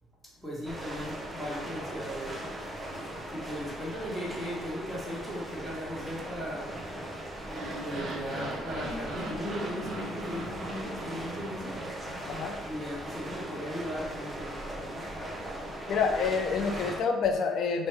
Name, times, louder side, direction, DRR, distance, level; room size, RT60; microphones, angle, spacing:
voice 1, 0.4-2.6 3.1-6.8 7.8-11.8 12.6-15.0, equal, ahead, -6 dB, 1.3 m, -38 dB
sound 1, 0.6-17.0, right 1 dB, 15° right, 0.6 m, -39 dB
sound 2, 7.4-12.6, right 1 dB, 50° right, 0.7 m, -39 dB
voice 2, 15.9-17.9, left 5 dB, 60° left, 4 dB, 0.4 m, -28 dB
2.9 x 2.1 x 3.3 m, 1.0 s
hypercardioid pair, 60°, 0 cm